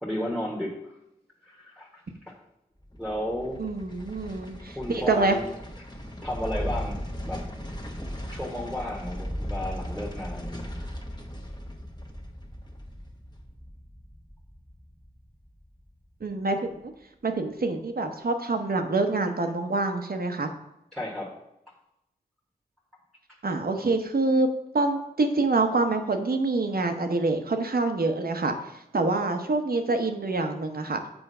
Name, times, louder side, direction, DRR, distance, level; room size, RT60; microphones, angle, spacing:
voice 1, 0.0-0.9 1.4-1.9 2.3-2.4 3.0-3.6 4.7-5.5 6.2-7.0 7.3-7.4 8.3-10.8 20.9-21.3, left 1 dB, ahead, -4 dB, 1.4 m, -33 dB
sound 1, 2.8-16.0 16.3-16.4, equal, 25° left, 1.3 m, -37 dB
voice 2, 3.6-5.4 16.2-16.9 17.2-20.5 23.4-24.5 24.7-28.5 28.9-31.0, right 3 dB, 60° right, 6 dB, 0.9 m, -26 dB
7.1 x 4.4 x 5.5 m, 0.85 s
cardioid pair, 40°, 17 cm